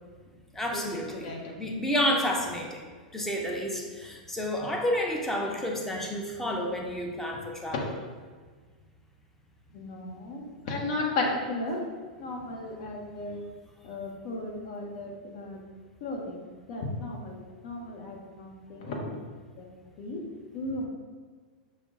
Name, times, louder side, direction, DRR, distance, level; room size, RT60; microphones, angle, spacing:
voice 1, 0.5-2.9 3.1-7.9, equal, 10° left, 0 dB, 0.8 m, -30 dB
voice 2, 1.2-1.6 9.7-13.4 13.8-15.6 16.0-19.2 19.6-19.7 20.0-20.2 20.5-20.9, left 2 dB, 55° left, -1 dB, 1.0 m, -35 dB
6.0 x 2.2 x 3.7 m, 1.5 s
hypercardioid pair, 110°, 5 cm